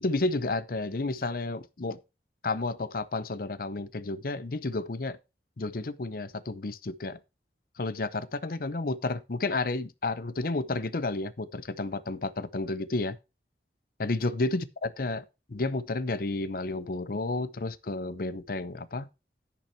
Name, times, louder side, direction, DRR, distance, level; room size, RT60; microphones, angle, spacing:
voice 1, 0.0-2.0 2.4-5.2 5.6-7.2 7.8-13.2 14.0-19.1, left 2 dB, 55° left, 0.7 m, -31 dB
10.5 x 6.0 x 4.4 m
head